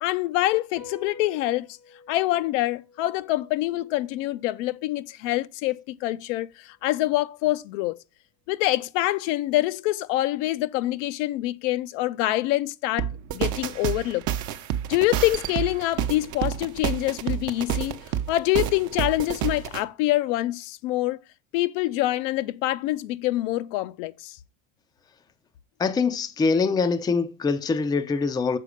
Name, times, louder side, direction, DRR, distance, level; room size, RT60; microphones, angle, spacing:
voice 1, 0.0-1.7 2.1-8.0 8.5-14.2 14.9-18.0 18.3-21.2 21.5-24.4, left 16 dB, 65° left, 0.6 m, -25 dB
sound 1, 0.8-7.5, left 4 dB, 85° left, 1.6 m, -51 dB
sound 2, 13.0-19.8, right 10 dB, 45° right, 0.8 m, -29 dB
voice 2, 25.8-28.6, left 4 dB, 10° left, 0.4 m, -24 dB
6.8 x 4.1 x 4.9 m
supercardioid pair, 105°, 40 cm